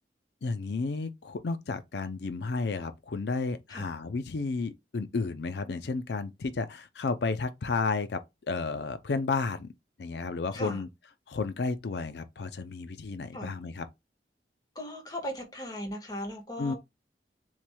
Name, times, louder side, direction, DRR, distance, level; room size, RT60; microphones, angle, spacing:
voice 1, 0.4-8.2 8.5-9.7 10.0-10.9 11.3-13.9 16.6-16.7, left 4 dB, 70° left, 0.5 m, -32 dB
voice 2, 10.5-10.8 13.3-13.5 14.7-16.8, equal, 20° left, 1.5 m, -38 dB
7.2 x 3.2 x 2.2 m
head